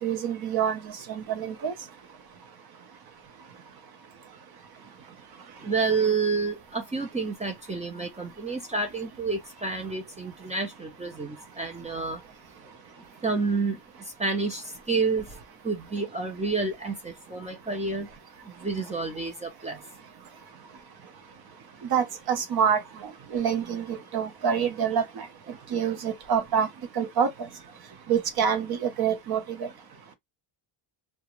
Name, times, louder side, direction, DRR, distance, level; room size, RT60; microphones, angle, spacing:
voice 1, 0.0-1.7 21.9-25.3 25.7-26.7 27.0-27.5 28.1-29.7, right 7 dB, 55° right, 0.7 m, -27 dB
voice 2, 5.6-12.2 13.2-13.8 14.2-15.3 15.6-18.1 18.6-19.8, right 4 dB, 15° right, 0.4 m, -29 dB
2.4 x 2.2 x 2.9 m
cardioid pair, 140°, 46 cm